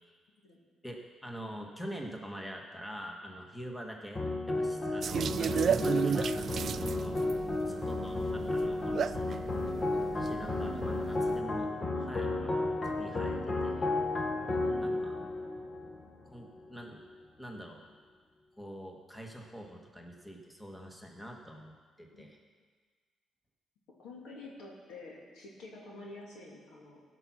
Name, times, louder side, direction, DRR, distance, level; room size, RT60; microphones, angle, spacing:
voice 1, 0.8-7.2 7.6-9.4 9.7-13.9 14.7-15.1 16.2-17.1 17.4-17.8 18.6-21.7 22.0-22.4, equal, 5° left, 1 dB, 1.6 m, -45 dB
sound 1, 4.2-16.6, left 2 dB, 30° left, 1.1 m, -33 dB
sound 2, 5.0-11.4, right 7 dB, 55° right, 0.3 m, -34 dB
voice 2, 14.6-15.2 22.1-22.3 24.0-27.0, left 2 dB, 85° left, -3 dB, 2.7 m, -49 dB
15.5 x 6.1 x 6.0 m, 1.5 s
cardioid pair, 90°, 0 cm